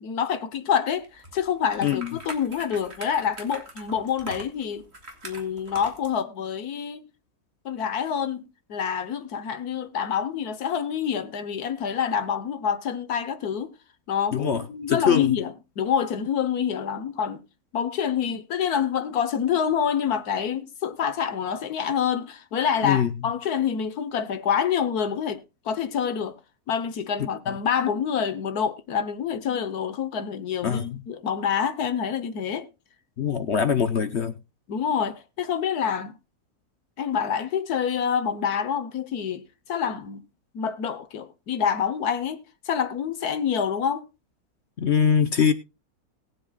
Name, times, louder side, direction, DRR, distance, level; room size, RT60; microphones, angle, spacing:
voice 1, 0.0-4.8 5.2-7.0 7.6-8.4 8.7-13.7 14.1-17.4 17.7-26.4 26.7-32.7 34.7-36.2 37.0-40.2 40.5-42.4 42.6-44.1, left 7 dB, 80° left, 1.6 m, -27 dB
sound 1, 1.0-6.1, right 2 dB, 45° right, 2.7 m, -42 dB
voice 2, 14.3-14.6 14.9-15.4 22.8-23.1 30.6-31.0 33.2-34.4 44.8-45.5, left 7 dB, 50° left, 1.0 m, -22 dB
20.0 x 7.8 x 2.3 m
omnidirectional pair, 1.6 m